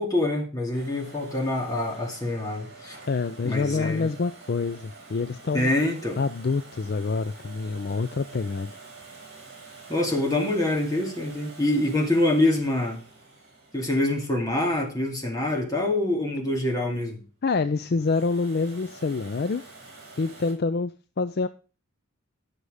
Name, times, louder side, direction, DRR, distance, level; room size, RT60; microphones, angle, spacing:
voice 1, 0.0-3.0 3.4-4.1 5.5-6.2 9.9-13.0 13.7-17.2, left 1 dB, 15° left, 2.4 m, -25 dB
Domestic sounds home sounds, 0.7-15.5 17.8-20.5, right 3 dB, 50° right, 5.7 m, -47 dB
voice 2, 3.1-5.7 6.2-8.7 17.4-19.6 20.2-21.5, left 4 dB, 45° left, 0.4 m, -27 dB
11.5 x 6.7 x 4.9 m
head